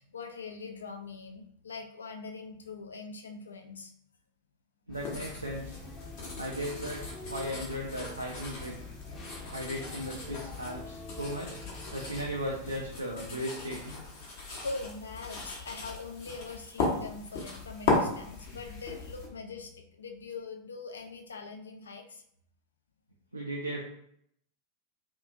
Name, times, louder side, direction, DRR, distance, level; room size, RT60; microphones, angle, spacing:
voice 1, 0.0-3.9 14.6-22.2, left 4 dB, 70° left, 4 dB, 0.4 m, -42 dB
sound 1, 4.9-19.3, left 3 dB, 50° left, 0.8 m, -37 dB
sound 2, 4.9-12.8, left 2 dB, 20° left, 0.6 m, -46 dB
voice 2, 4.9-5.8 6.4-7.0 7.3-8.8 9.5-11.6 11.9-14.0 23.3-23.8, equal, 85° right, -3 dB, 0.4 m, -36 dB
2.7 x 2.4 x 2.4 m, 0.70 s
figure-of-eight pair, 90°, 0 cm